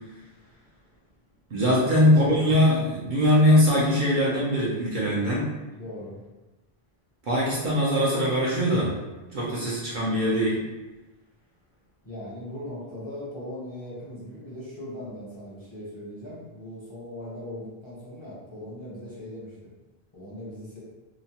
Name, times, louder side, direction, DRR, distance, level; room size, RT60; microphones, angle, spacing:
voice 1, 1.5-5.5 7.3-8.9 9.3-10.6, equal, 55° right, -5 dB, 0.7 m, -22 dB
voice 2, 5.7-6.2 12.0-19.5 20.1-20.8, left 1 dB, 30° left, -8 dB, 0.7 m, -39 dB
3.0 x 2.1 x 2.8 m, 1.1 s
omnidirectional pair, 1.1 m